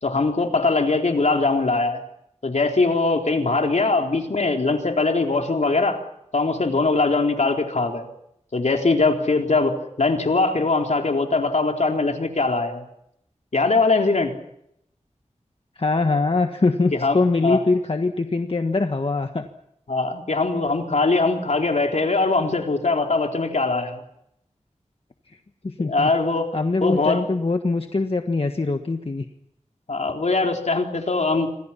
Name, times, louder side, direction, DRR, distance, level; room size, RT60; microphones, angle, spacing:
voice 1, 0.0-2.0 2.4-6.0 6.3-8.1 8.5-12.8 13.5-14.3 16.9-17.2 17.4-17.6 19.9-24.0 25.8-26.5 26.8-27.2 29.9-31.5, left 3 dB, 70° left, 3 dB, 3.8 m, -21 dB
voice 2, 15.7-19.4 25.3-25.4 25.6-26.1 26.5-29.3, left 3 dB, 50° left, 6 dB, 1.5 m, -22 dB
27.5 x 25.5 x 5.9 m, 0.76 s
wide cardioid pair, 80°, 12 cm